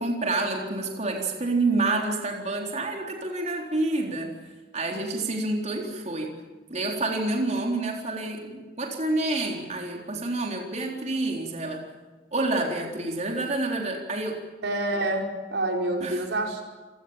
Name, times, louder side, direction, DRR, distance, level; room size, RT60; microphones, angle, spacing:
voice 1, 0.0-4.3 4.7-6.3 6.7-11.8 12.3-14.4 16.0-16.2, right 2 dB, 40° right, 1 dB, 4.0 m, -28 dB
voice 2, 14.6-16.6, right 1 dB, 80° right, 2 dB, 5.1 m, -27 dB
28.0 x 19.0 x 8.9 m, 1.3 s
head